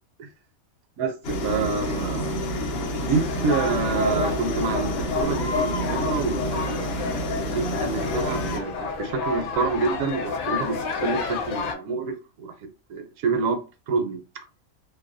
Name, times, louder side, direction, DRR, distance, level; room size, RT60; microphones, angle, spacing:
sound 1, 1.2-8.6, equal, 60° left, 0.7 m, -29 dB
voice 1, 1.4-2.4 3.0-6.9 7.4-12.5 12.9-13.6 13.9-14.2, right 4 dB, 75° right, 0.9 m, -27 dB
sound 2, 3.1-11.7, left 5 dB, 80° left, 1.0 m, -30 dB
2.6 x 2.1 x 2.5 m
omnidirectional pair, 1.5 m